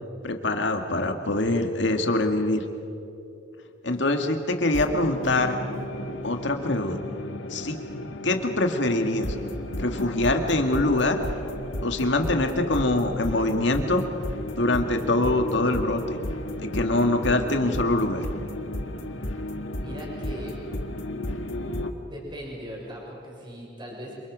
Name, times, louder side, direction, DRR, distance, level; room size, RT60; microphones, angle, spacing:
voice 1, 0.2-2.6 3.8-5.5 6.2-7.0 7.5-7.8 8.2-9.3 9.8-11.2 11.8-14.0 14.5-16.0 16.6-18.3, left 2 dB, 65° left, 5 dB, 2.2 m, -24 dB
sound 1, 4.7-21.9, left 1 dB, 90° left, 1.9 m, -33 dB
voice 2, 19.7-20.6 22.0-24.1, equal, 25° right, -3 dB, 6.6 m, -39 dB
29.0 x 27.0 x 6.3 m, 2.9 s
head